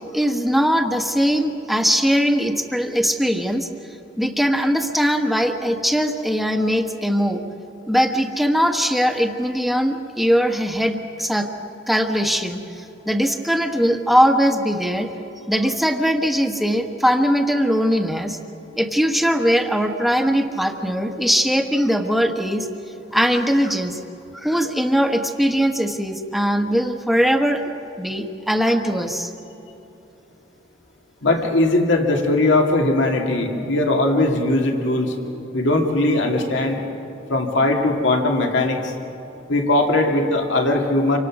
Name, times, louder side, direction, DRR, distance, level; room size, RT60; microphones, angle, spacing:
voice 1, 0.1-3.7 4.2-7.4 7.9-11.5 11.9-15.1 15.5-18.4 18.8-22.7 23.1-24.0 24.3-27.6 28.0-29.3, equal, ahead, 4 dB, 1.4 m, -20 dB
voice 2, 31.2-35.1 35.5-36.8 37.3-38.9 39.5-41.2, left 2 dB, 70° left, 2 dB, 2.4 m, -19 dB
28.0 x 24.5 x 6.2 m, 3.0 s
head